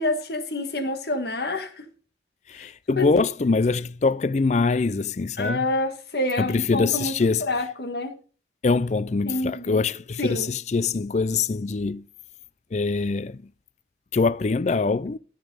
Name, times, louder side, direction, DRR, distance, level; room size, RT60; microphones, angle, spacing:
voice 1, 0.0-1.9 2.5-2.7 3.0-3.1 5.4-7.1 7.4-8.1 9.2-9.8 10.2-10.5, left 2 dB, 60° left, 1.8 m, -27 dB
voice 2, 2.5-5.7 6.4-7.5 8.6-12.0 12.7-13.5 14.1-15.2, left 4 dB, 40° left, 0.4 m, -24 dB
13.5 x 5.2 x 5.5 m
head